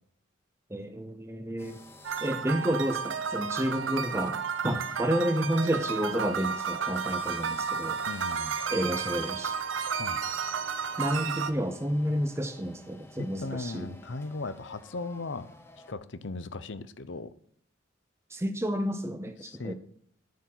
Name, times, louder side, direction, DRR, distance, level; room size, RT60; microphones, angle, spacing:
voice 1, 0.7-1.8 2.2-8.0 8.7-9.6 11.0-13.9 18.3-19.7, equal, 15° right, 0.7 m, -30 dB
sound 1, 1.6-15.9, left 1 dB, 15° left, 1.0 m, -53 dB
sound 2, 2.0-11.5, right 6 dB, 80° right, 0.7 m, -32 dB
voice 2, 8.1-8.5 10.0-10.2 13.2-15.5 15.9-17.3 19.4-19.7, left 3 dB, 70° left, 0.7 m, -37 dB
9.4 x 7.1 x 6.1 m
head